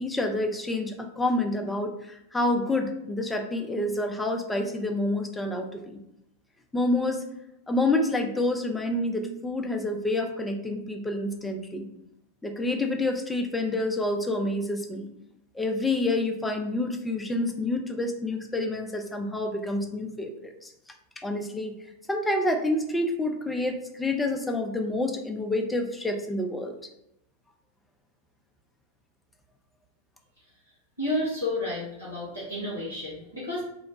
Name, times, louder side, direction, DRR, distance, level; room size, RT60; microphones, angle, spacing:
voice 1, 0.0-6.0 6.7-7.2 7.7-11.9 12.4-15.1 15.5-20.7 21.2-21.7 22.1-26.8, left 2 dB, 10° left, 3 dB, 0.4 m, -28 dB
voice 2, 31.0-33.6, left 1 dB, 90° right, -10 dB, 1.0 m, -31 dB
3.1 x 2.1 x 3.7 m, 0.84 s
figure-of-eight pair, 90°, 0 cm